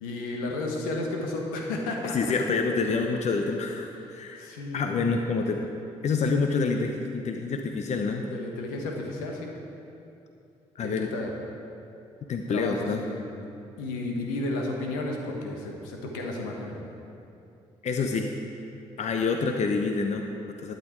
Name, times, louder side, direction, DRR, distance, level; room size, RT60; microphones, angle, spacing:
voice 1, 0.0-2.3 4.4-4.8 8.3-9.5 10.8-11.3 12.5-13.4 13.8-17.0, left 2 dB, 80° left, 1 dB, 1.4 m, -33 dB
voice 2, 2.1-5.6 6.0-8.2 10.8-11.1 12.3-13.0 17.8-18.3 19.0-20.7, left 4 dB, 50° left, 4 dB, 0.8 m, -27 dB
12.0 x 9.2 x 4.6 m, 2.7 s
hypercardioid pair, 45°, 15 cm